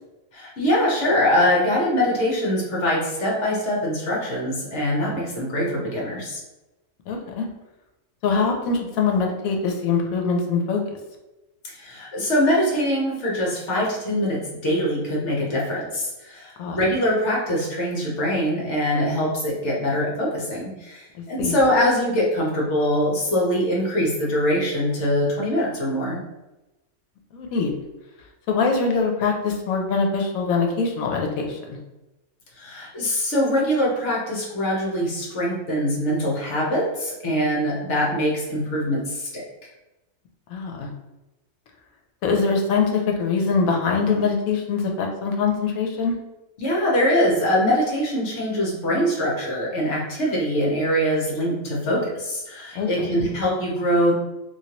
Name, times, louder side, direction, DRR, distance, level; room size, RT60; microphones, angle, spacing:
voice 1, 0.3-6.4 11.7-26.2 32.6-39.4 46.6-54.1, equal, 60° left, -4 dB, 1.1 m, -23 dB
voice 2, 7.1-7.5 8.2-10.8 16.6-16.8 21.4-21.5 27.3-27.7 28.5-31.6 40.5-40.9 42.2-46.2 52.7-53.1, left 4 dB, 90° left, 2 dB, 1.0 m, -23 dB
3.1 x 2.5 x 2.9 m, 1.0 s
omnidirectional pair, 1.4 m